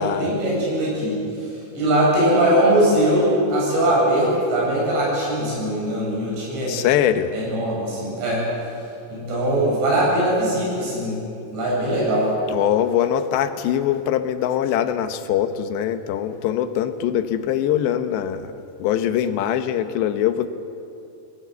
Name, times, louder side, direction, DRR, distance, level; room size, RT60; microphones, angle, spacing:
voice 1, 0.0-6.7 7.3-8.5 9.1-11.2 11.5-12.3, right 1 dB, 90° right, -4 dB, 10.0 m, -21 dB
voice 2, 6.7-7.3 12.5-18.5 18.8-20.5, left 10 dB, 90° left, 9 dB, 3.3 m, -22 dB
27.0 x 19.0 x 8.2 m, 2.7 s
omnidirectional pair, 4.9 m